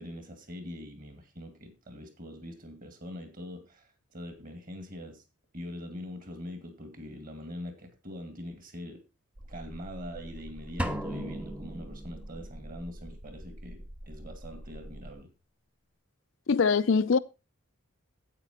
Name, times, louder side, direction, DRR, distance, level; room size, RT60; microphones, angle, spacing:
voice 1, 0.0-5.2 5.5-9.0 9.5-15.3, left 1 dB, 40° right, 2.2 m, -43 dB
sound 1, 9.4-15.1, equal, 65° right, 2.1 m, -46 dB
sound 2, 10.8-12.6, equal, 5° right, 0.6 m, -36 dB
voice 2, 16.5-17.2, left 5 dB, 60° left, 0.4 m, -23 dB
9.0 x 8.5 x 4.3 m
head